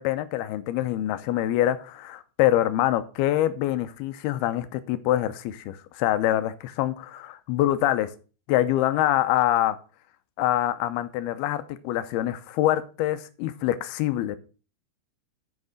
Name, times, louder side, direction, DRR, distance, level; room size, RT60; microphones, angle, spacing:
voice 1, 0.0-8.1 8.5-9.8 10.4-14.4, left 13 dB, 80° left, 12 dB, 2.5 m, -25 dB
9.6 x 5.5 x 6.4 m, 0.36 s
omnidirectional pair, 4.9 m